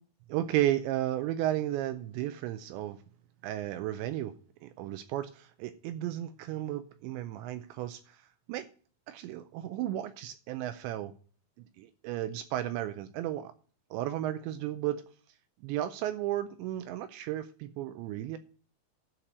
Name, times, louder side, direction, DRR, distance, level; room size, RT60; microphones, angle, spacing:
voice 1, 0.3-3.0 3.4-4.3 4.6-8.2 8.5-8.7 9.1-11.1 11.8-13.5 13.9-15.0 15.6-18.4, right 13 dB, 80° right, 2.7 m, -33 dB
12.5 x 4.5 x 7.9 m
omnidirectional pair, 5.4 m